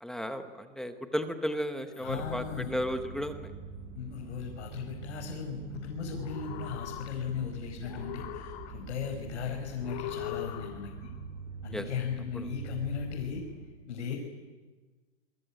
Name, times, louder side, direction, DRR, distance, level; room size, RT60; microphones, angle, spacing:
voice 1, 0.0-3.5 11.7-11.9 12.3-12.5, equal, ahead, 7 dB, 0.8 m, -34 dB
voice 2, 2.0-2.7 3.9-10.9 11.6-13.4 13.9-14.2, left 7 dB, 70° left, 0 dB, 5.8 m, -37 dB
sound 1, 2.1-13.6, right 4 dB, 20° right, 6.6 m, -44 dB
sound 2, 6.0-7.5 7.8-9.1 9.8-11.1, left 14 dB, 40° left, 1.9 m, -41 dB
28.0 x 22.5 x 8.9 m, 1.3 s
hypercardioid pair, 165°, 37 cm